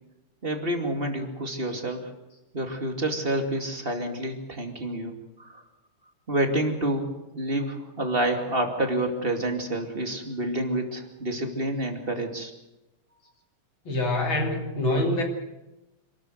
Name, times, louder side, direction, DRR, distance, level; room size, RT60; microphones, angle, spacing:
voice 1, 0.4-2.1 2.5-5.1 5.4-5.6 6.3-12.5, right 1 dB, 20° right, 4 dB, 2.3 m, -28 dB
voice 2, 13.8-15.2, left 1 dB, 40° left, 3 dB, 3.4 m, -25 dB
27.0 x 13.0 x 8.0 m, 1.0 s
omnidirectional pair, 3.6 m